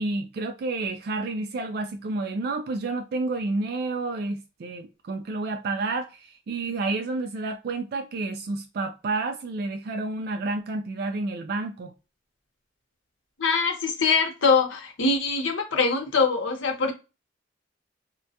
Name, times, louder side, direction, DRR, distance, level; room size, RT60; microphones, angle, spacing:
voice 1, 0.0-11.9, right 3 dB, 55° right, 0.3 m, -30 dB
voice 2, 13.4-16.9, left 4 dB, 85° left, 0.8 m, -23 dB
2.1 x 2.1 x 2.7 m
head